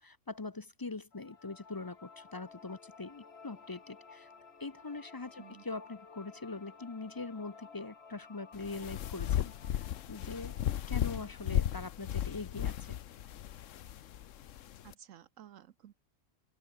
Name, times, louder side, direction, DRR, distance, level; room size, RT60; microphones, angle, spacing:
voice 1, 0.0-4.3 4.6-10.6 10.9-13.0, left 3 dB, 25° left, 0.5 m, -43 dB
sound 1, 1.1-12.2, left 5 dB, 55° left, 2.0 m, -56 dB
sound 2, 8.5-14.9, left 11 dB, 75° left, 1.1 m, -35 dB
voice 2, 14.8-15.9, right 10 dB, 80° right, 1.1 m, -54 dB
omnidirectional pair, 1.3 m